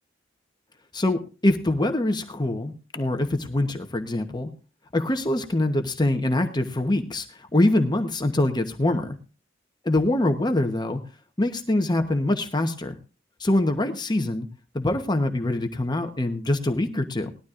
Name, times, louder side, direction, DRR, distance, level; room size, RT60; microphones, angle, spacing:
voice 1, 0.9-4.5 4.9-9.2 9.8-11.0 11.4-13.0 13.4-14.5 14.7-17.3, left 1 dB, 20° left, 6 dB, 1.0 m, -24 dB
19.0 x 12.5 x 2.5 m, 0.34 s
head